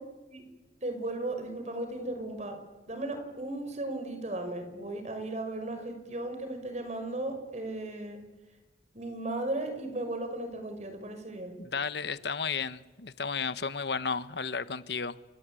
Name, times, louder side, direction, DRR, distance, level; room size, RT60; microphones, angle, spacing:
voice 1, 0.8-2.6 2.9-8.2 8.9-11.6, right 2 dB, 40° right, 5.8 m, -36 dB
voice 2, 11.6-15.2, left 5 dB, 65° left, 1.2 m, -33 dB
29.5 x 22.0 x 9.1 m
head